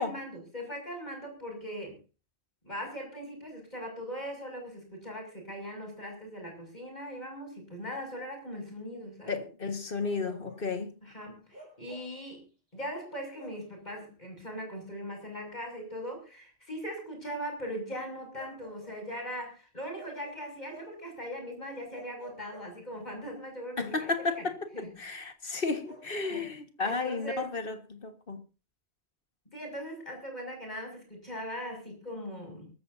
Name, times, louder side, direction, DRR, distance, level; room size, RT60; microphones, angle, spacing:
voice 1, 0.0-2.0 2.6-9.4 11.0-12.4 12.7-24.4 24.7-24.9 26.3-26.5 26.8-27.5 29.5-32.7, equal, 40° left, 6.7 m, -40 dB
voice 2, 9.3-10.9 23.8-28.4, left 3 dB, 60° left, 1.9 m, -33 dB
Bark, 10.0-10.7 11.5-12.2 13.3-13.7 15.4-15.6 18.3-19.3 19.9-21.0 21.9-23.2 25.8-26.6, equal, 65° right, 7.1 m, -52 dB
23.5 x 14.0 x 2.7 m
omnidirectional pair, 1.1 m